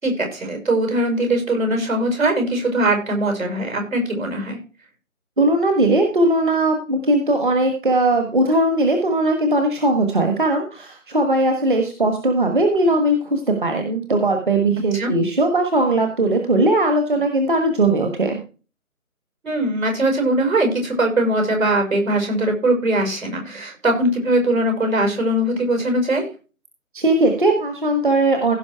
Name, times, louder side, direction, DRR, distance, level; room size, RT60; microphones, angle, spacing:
voice 1, 0.0-4.6 14.9-15.1 19.4-26.3, right 1 dB, 70° right, 3 dB, 5.7 m, -21 dB
voice 2, 5.4-18.3 26.9-28.6, right 2 dB, 35° right, 4 dB, 1.4 m, -19 dB
16.5 x 5.5 x 4.5 m, 0.35 s
figure-of-eight pair, 155°, 42 cm